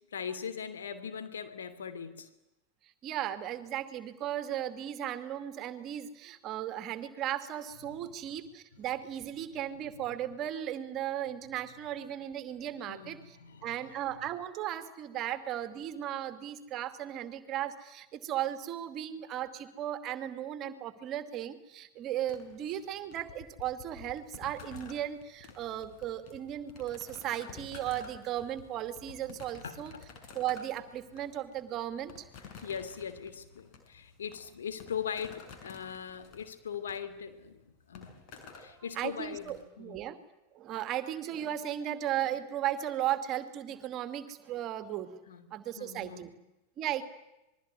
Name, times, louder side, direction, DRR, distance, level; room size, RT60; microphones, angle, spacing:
voice 1, 0.1-2.3 7.8-8.1 12.9-13.8 29.6-30.1 32.6-38.2 38.5-40.0 45.3-45.4 45.8-46.4, left 7 dB, 65° left, 10 dB, 2.8 m, -40 dB
voice 2, 3.0-13.4 13.6-29.9 30.3-32.2 39.0-40.2 40.5-45.2 45.5-46.3 46.8-47.0, right 11 dB, 35° right, 10 dB, 2.4 m, -36 dB
sound 1, 22.3-39.6, left 6 dB, 40° left, 5.9 m, -52 dB
27.0 x 22.0 x 9.9 m, 0.96 s
figure-of-eight pair, 90°, 0 cm